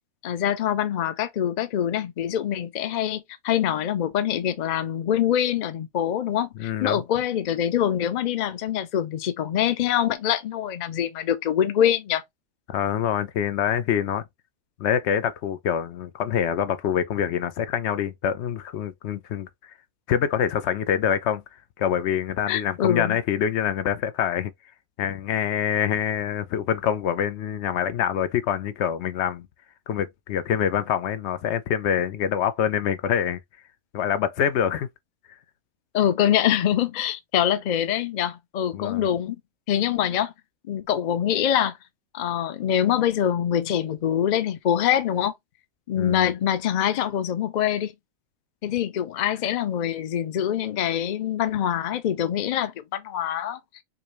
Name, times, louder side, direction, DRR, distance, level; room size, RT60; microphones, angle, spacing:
voice 1, 0.2-12.2 22.5-23.2 35.9-39.4 39.7-40.3 40.7-41.7 42.1-45.3 45.9-47.9 48.6-53.6, left 10 dB, 85° left, 0.4 m, -24 dB
voice 2, 6.6-7.0 12.7-14.2 14.8-19.5 20.1-21.4 21.8-24.5 25.0-29.5 29.9-33.4 33.9-34.9 38.7-39.1 46.0-46.3, left 9 dB, 65° left, 0.7 m, -25 dB
4.8 x 2.2 x 2.9 m
omnidirectional pair, 1.4 m